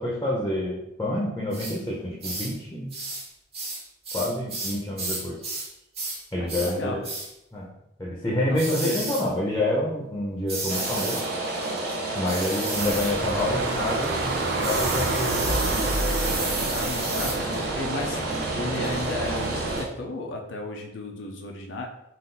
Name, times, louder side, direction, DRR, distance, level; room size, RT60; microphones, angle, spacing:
voice 1, 0.0-2.9 4.1-5.4 6.3-7.0 7.5-7.7 8.0-11.2 12.1-15.8, left 1 dB, 15° left, -4 dB, 0.7 m, -28 dB
sound 1, 1.5-1.8 2.2-2.5 2.9-3.3 3.5-5.7 5.9-6.2 6.5-6.7 7.0-7.3 8.6-9.3 10.5-11.3 12.3-13.2 14.6-17.4, right 2 dB, 35° right, 1.3 m, -32 dB
voice 2, 6.4-7.0 8.5-9.0 16.7-22.0, left 2 dB, 85° left, 2 dB, 0.5 m, -34 dB
Rain, 10.7-19.8, right 2 dB, 55° right, 1.0 m, -30 dB
sound 2, 12.8-19.8, right 2 dB, 70° right, 0.5 m, -30 dB
3.9 x 2.5 x 3.9 m, 0.83 s
head